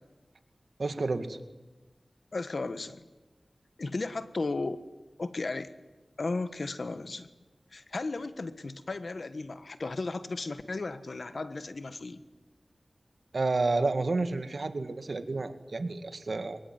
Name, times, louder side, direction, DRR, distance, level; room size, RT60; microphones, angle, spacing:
voice 1, 0.8-1.4 13.3-16.6, right 3 dB, 75° right, 9 dB, 2.0 m, -30 dB
voice 2, 2.3-3.0 3.8-4.8 5.2-5.7 6.2-7.3 7.7-12.2, left 3 dB, 75° left, 11 dB, 1.5 m, -35 dB
23.5 x 21.0 x 9.6 m, 1.2 s
wide cardioid pair, 50°, 0 cm